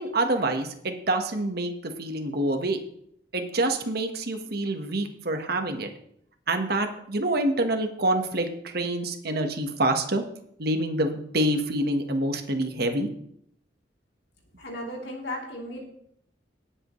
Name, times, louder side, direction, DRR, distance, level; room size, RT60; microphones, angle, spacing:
voice 1, 0.0-2.8 3.3-5.9 6.5-10.2 10.6-13.1, right 1 dB, 60° right, 5 dB, 1.4 m, -26 dB
voice 2, 14.6-15.8, left 1 dB, 65° left, -1 dB, 3.3 m, -35 dB
18.5 x 8.0 x 3.2 m, 0.71 s
head